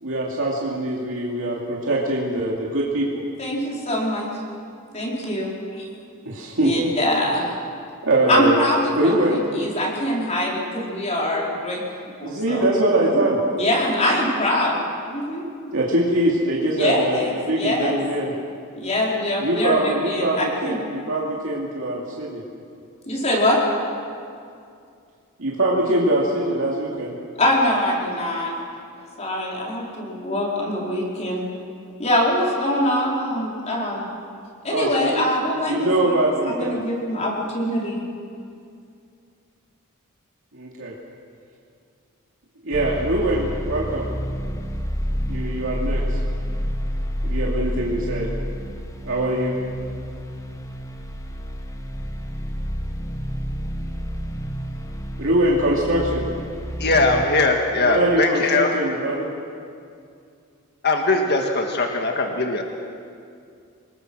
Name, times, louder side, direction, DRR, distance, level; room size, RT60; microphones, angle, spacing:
voice 1, 0.0-3.2 6.2-6.9 8.0-8.5 8.9-9.4 12.2-13.4 15.7-18.3 19.4-22.4 25.4-27.2 34.7-35.3 35.7-36.8 40.5-40.9 42.6-44.1 45.3-46.2 47.2-48.3 49.0-49.6 55.2-56.2 57.8-59.3, right 1 dB, 65° right, -4 dB, 2.7 m, -22 dB
voice 2, 3.4-4.3 4.9-5.9 6.2-6.3 6.6-7.5 8.3-11.8 12.2-12.6 13.1-13.2 13.6-14.8 15.1-15.4 16.8-18.0 18.8-20.8 23.1-23.6 27.4-28.6 29.2-31.5 32.0-34.0 34.6-36.1 36.5-38.0, left 1 dB, 30° left, -3 dB, 4.6 m, -23 dB
sound 1, 42.7-57.3, equal, 15° left, 1.3 m, -29 dB
voice 3, 56.8-58.7 60.8-62.6, left 3 dB, 50° left, 3 dB, 1.8 m, -20 dB
27.5 x 21.0 x 6.3 m, 2.4 s
head